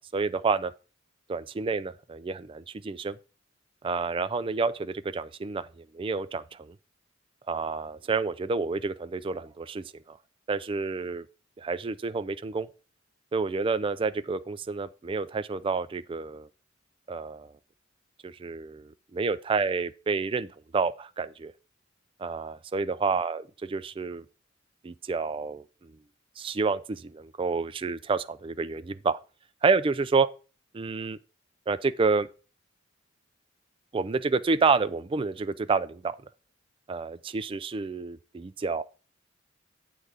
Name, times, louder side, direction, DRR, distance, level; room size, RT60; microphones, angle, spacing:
voice 1, 0.1-0.7 1.3-3.2 3.8-6.7 7.5-10.2 10.5-11.2 11.6-12.7 13.3-16.5 17.1-17.5 18.2-21.5 22.2-23.4 23.7-24.2 24.8-25.6 26.4-29.2 29.6-30.3 30.8-31.2 31.7-32.3 33.9-36.2 36.9-38.8, right 4 dB, 25° right, 0.3 m, -29 dB
8.0 x 3.7 x 6.6 m
head